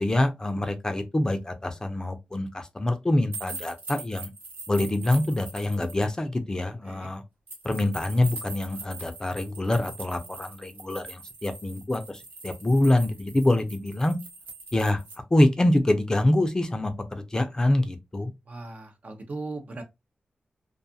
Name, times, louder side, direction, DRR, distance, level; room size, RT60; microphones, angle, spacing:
voice 1, 0.0-4.3 4.7-7.2 7.6-14.1 14.7-15.0 15.3-18.3, left 1 dB, 25° left, 0.5 m, -25 dB
sound 1, 3.3-6.0 7.5-15.2, right 3 dB, 90° right, 1.1 m, -42 dB
voice 2, 18.5-19.8, right 3 dB, 55° right, 0.6 m, -38 dB
2.5 x 2.4 x 2.6 m
cardioid pair, 75°, 3 cm